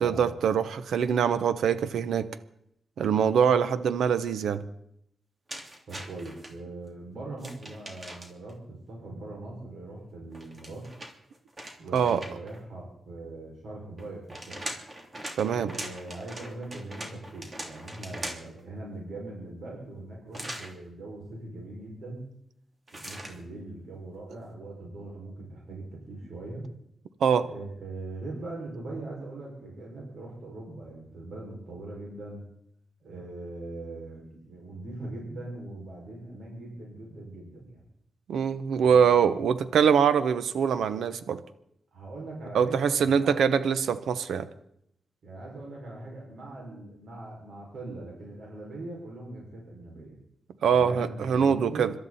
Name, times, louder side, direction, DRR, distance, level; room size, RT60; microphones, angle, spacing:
voice 1, 0.0-2.3 3.0-4.6 11.9-12.2 15.4-15.7 27.2-27.5 38.3-41.4 42.5-44.5 50.6-51.9, right 7 dB, 90° right, 12 dB, 0.9 m, -23 dB
sound 1, 5.5-6.5 7.4-8.5 10.3-12.6 14.0-18.6 20.3-20.7 22.9-23.4, right 1 dB, 30° right, 3.1 m, -41 dB
voice 2, 5.9-10.9 11.8-14.6 15.5-22.2 22.9-26.7 27.4-32.4 33.0-37.8 41.9-43.4 45.2-50.2 50.7-51.9, right 2 dB, 70° right, -2 dB, 5.7 m, -41 dB
26.5 x 13.0 x 4.2 m, 0.73 s
cardioid pair, 95°, 0 cm